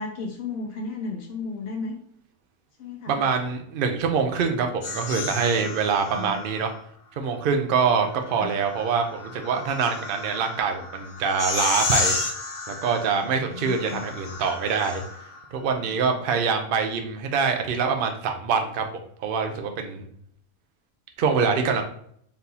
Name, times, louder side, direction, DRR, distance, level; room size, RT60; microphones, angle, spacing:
voice 1, 0.0-2.0 2.8-3.2 6.1-6.4 8.4-8.6 13.5-14.0, left 4 dB, 65° left, 1 dB, 0.6 m, -34 dB
voice 2, 3.1-6.7 7.2-12.1 12.7-15.0 15.5-18.8 19.2-20.1 21.2-21.8, right 5 dB, 90° right, 5 dB, 0.4 m, -25 dB
sound 1, 4.8-6.8 8.2-15.4, left 4 dB, 85° left, 1.5 m, -32 dB
4.0 x 3.5 x 2.8 m, 0.65 s
omnidirectional pair, 1.6 m